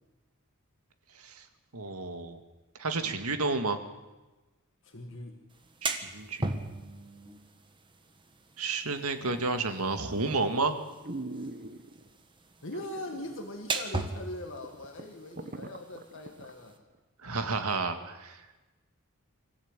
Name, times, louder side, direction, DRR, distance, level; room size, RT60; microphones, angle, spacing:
voice 1, 1.7-2.4 2.8-3.8 5.8-6.5 8.6-10.8 17.2-18.4, right 3 dB, 90° right, 7 dB, 2.2 m, -31 dB
voice 2, 4.8-5.4 9.2-9.5 12.6-16.8, left 1 dB, 60° left, 3 dB, 1.9 m, -41 dB
sound 1, 5.5-16.8, right 3 dB, 20° right, 1.6 m, -40 dB
sound 2, 11.0-12.1 12.7-13.4 13.7-13.8 14.3-14.4 14.6-16.5 16.9-17.0, right 2 dB, 40° right, 1.3 m, -41 dB
24.5 x 15.0 x 9.1 m, 1.1 s
head